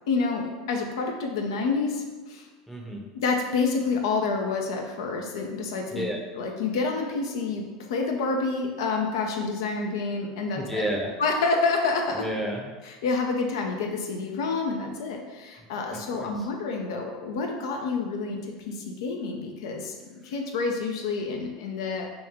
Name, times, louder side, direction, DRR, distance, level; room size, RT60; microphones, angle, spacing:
voice 1, 0.1-2.5 3.1-6.1 6.4-10.8 11.2-12.2 13.0-18.4 18.7-22.1, left 4 dB, 75° left, 2 dB, 0.4 m, -28 dB
voice 2, 2.7-3.0 5.9-6.2 10.6-11.1 12.1-12.7 15.9-16.5, equal, ahead, -2 dB, 0.6 m, -31 dB
2.9 x 2.2 x 3.6 m, 1.3 s
hypercardioid pair, 90°, 2 cm